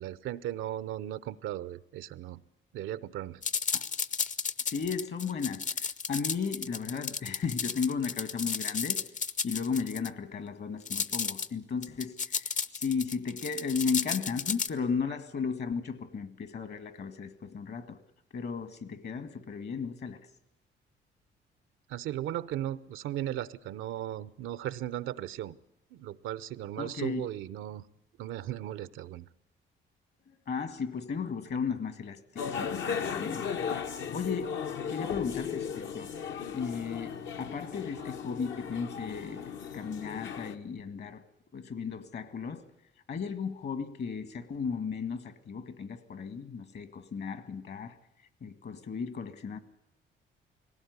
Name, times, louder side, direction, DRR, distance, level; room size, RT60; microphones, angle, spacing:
voice 1, 0.0-2.4 2.7-3.4 21.9-25.6 25.9-27.9 28.2-29.3, right 12 dB, 90° right, 0.7 m, -36 dB
sound 1, 3.4-10.1 10.9-11.5 11.8-14.7, left 6 dB, 40° left, 0.7 m, -33 dB
voice 2, 4.6-9.0 9.4-18.0 18.3-20.2 26.8-27.3 30.3-33.4 34.0-34.6 34.9-36.1 36.5-41.2 41.5-42.6 43.1-48.0 48.4-49.6, left 5 dB, 55° left, 1.8 m, -35 dB
sound 2, 32.4-40.5, left 7 dB, 75° left, 1.3 m, -36 dB
19.0 x 17.0 x 9.6 m
cardioid pair, 90°, 20 cm